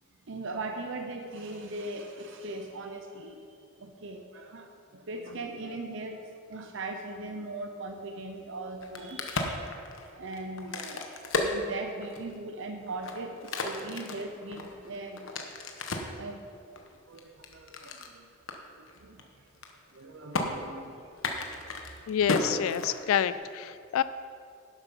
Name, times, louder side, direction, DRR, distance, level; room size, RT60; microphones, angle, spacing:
voice 1, 0.3-6.2 6.5-9.8 10.0-11.0 11.4-15.7 16.2-16.5 17.1-18.3 18.7-19.3 19.9-21.3 21.7-22.0, right 2 dB, 65° right, 4 dB, 0.8 m, -40 dB
Crack, 8.7-12.4 12.9-16.2 16.8-18.1 18.5-18.6 18.9-19.2 19.5-20.0 20.3-20.5 21.1-23.4, left 2 dB, 70° left, 1.2 m, -34 dB
voice 2, 22.1-24.0, left 9 dB, 85° left, 14 dB, 0.3 m, -27 dB
11.5 x 8.2 x 5.5 m, 2.4 s
head